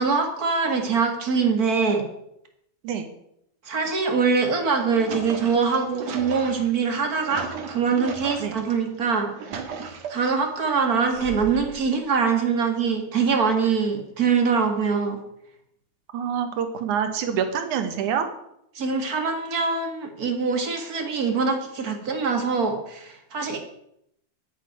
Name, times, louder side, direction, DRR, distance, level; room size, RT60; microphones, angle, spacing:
voice 1, 0.0-2.1 3.6-9.3 9.8-15.2 18.7-23.6, right 5 dB, 35° right, 4 dB, 2.3 m, -23 dB
sound 1, 4.6-8.7 9.2-10.4 11.1-11.8, right 5 dB, 65° right, 2.8 m, -36 dB
voice 2, 16.1-18.3, right 8 dB, 85° right, 8 dB, 2.9 m, -26 dB
10.0 x 9.1 x 9.4 m, 0.76 s
omnidirectional pair, 3.4 m